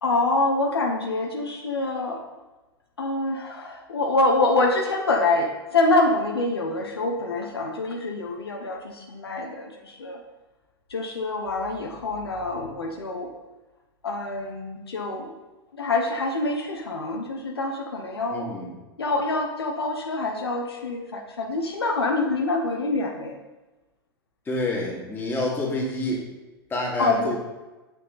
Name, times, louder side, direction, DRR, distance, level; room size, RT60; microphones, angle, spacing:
voice 1, 0.0-2.2 3.0-10.2 10.9-13.3 14.0-15.4 15.7-18.6 19.0-23.4 27.0-27.3, left 2 dB, 75° left, 3 dB, 1.0 m, -26 dB
voice 2, 18.3-18.7 24.5-26.3 26.7-27.4, left 1 dB, 15° left, -3 dB, 2.4 m, -28 dB
8.6 x 6.8 x 4.0 m, 1.1 s
figure-of-eight pair, 95°, 13 cm